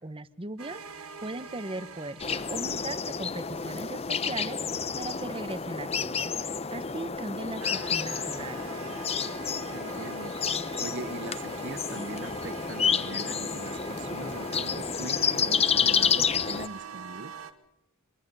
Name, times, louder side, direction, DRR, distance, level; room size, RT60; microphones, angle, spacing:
voice 1, 0.0-6.3 6.7-8.7, right 2 dB, 25° right, 1.0 m, -38 dB
sound 1, 0.6-3.3 7.6-17.5, right 4 dB, 75° right, 2.1 m, -44 dB
sound 2, 2.2-16.7, left 6 dB, 30° left, 0.9 m, -30 dB
voice 2, 9.7-17.3, right 2 dB, 55° right, 1.0 m, -41 dB
25.5 x 23.5 x 5.5 m
head